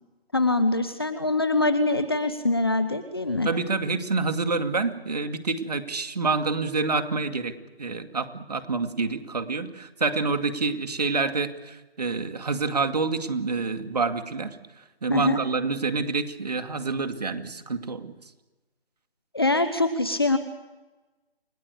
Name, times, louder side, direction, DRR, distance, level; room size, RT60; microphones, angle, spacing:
voice 1, 0.3-3.5 15.1-15.4 19.3-20.4, left 2 dB, 25° left, 10 dB, 0.9 m, -23 dB
voice 2, 3.4-14.6 15.0-18.1, right 4 dB, 40° right, 8 dB, 2.2 m, -27 dB
29.0 x 18.5 x 8.2 m, 1.1 s
figure-of-eight pair, 170°, 31 cm